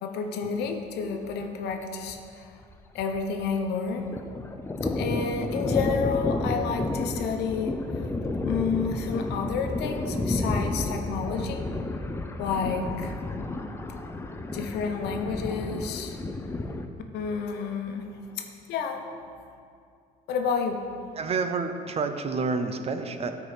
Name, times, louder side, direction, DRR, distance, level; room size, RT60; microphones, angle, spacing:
voice 1, 0.0-2.6 2.9-4.1 4.9-7.7 8.4-11.6 12.4-13.2 14.5-16.2 17.1-18.1 18.4-19.1 20.3-20.8, left 6 dB, 80° left, 5 dB, 1.0 m, -30 dB
Thunder, 1.3-1.4 1.7-1.8 2.1-3.6 3.9-16.9, left 2 dB, 15° left, 0.6 m, -31 dB
voice 2, 21.1-23.3, right 4 dB, 35° right, 8 dB, 0.7 m, -29 dB
12.5 x 4.7 x 5.1 m, 2.4 s
cardioid pair, 110°, 17 cm